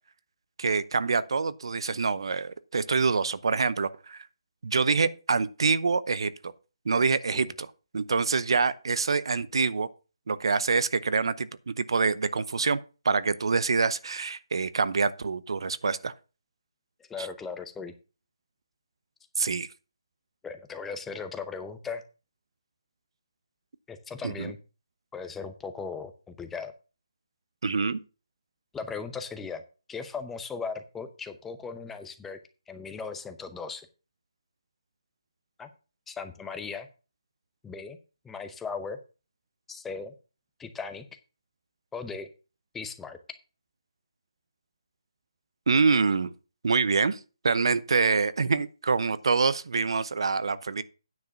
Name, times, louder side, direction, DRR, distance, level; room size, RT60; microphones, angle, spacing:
voice 1, 0.6-4.3 4.6-6.3 6.9-7.7 7.9-9.9 10.3-12.8 13.0-16.1 17.2-17.3 19.4-19.7 24.2-24.5 27.6-28.0 45.7-46.3 46.6-47.2 47.4-50.8, right 4 dB, 65° right, 0.7 m, -26 dB
voice 2, 17.0-17.9 20.4-22.0 23.9-24.6 25.1-26.7 28.7-29.6 29.9-32.4 32.7-33.9 35.6-35.7 36.1-36.9 37.6-38.0 38.2-39.0 39.7-40.1 40.6-41.0 41.9-42.3 42.7-43.2, left 5 dB, 5° left, 0.7 m, -37 dB
9.5 x 4.8 x 6.9 m
figure-of-eight pair, 155°, 3 cm